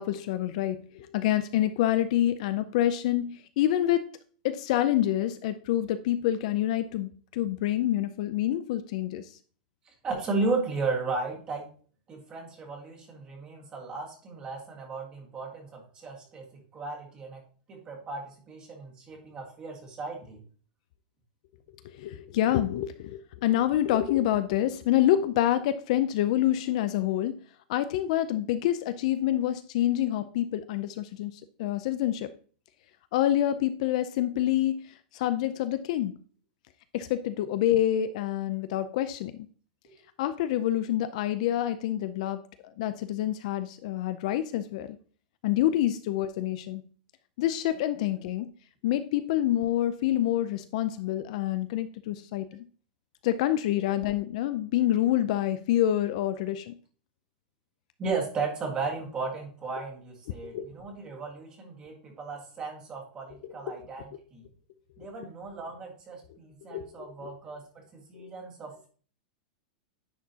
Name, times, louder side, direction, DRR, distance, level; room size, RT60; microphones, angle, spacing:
voice 1, 0.0-4.0 4.4-9.3 22.0-27.3 27.7-32.3 33.1-36.2 36.9-39.3 40.2-42.4 42.8-45.0 45.4-46.9 47.4-48.5 48.8-52.6 53.2-56.7 60.5-60.7 63.7-63.8 66.7-67.3 68.1-68.3, left 12 dB, 45° left, 12 dB, 0.4 m, -27 dB
voice 2, 10.0-11.7 12.1-17.4 17.7-20.4 58.0-64.4 65.0-68.9, right 3 dB, 20° right, 0 dB, 1.7 m, -35 dB
9.9 x 4.6 x 2.8 m, 0.42 s
supercardioid pair, 170°, 5 cm